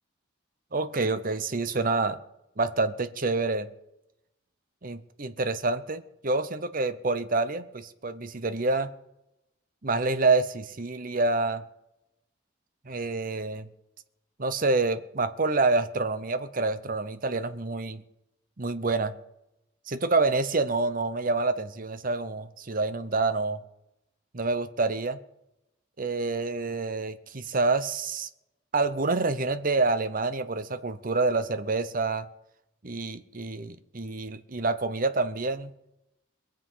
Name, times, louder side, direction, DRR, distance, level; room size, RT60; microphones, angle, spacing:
voice 1, 0.7-2.2 2.6-3.7 4.8-8.9 9.8-11.6 12.9-13.7 14.4-18.0 18.6-19.1 19.9-23.6 24.3-25.2 26.0-28.3 28.7-32.3 32.8-35.7, right 3 dB, 45° right, 12 dB, 0.9 m, -27 dB
23.0 x 7.8 x 5.6 m, 0.88 s
head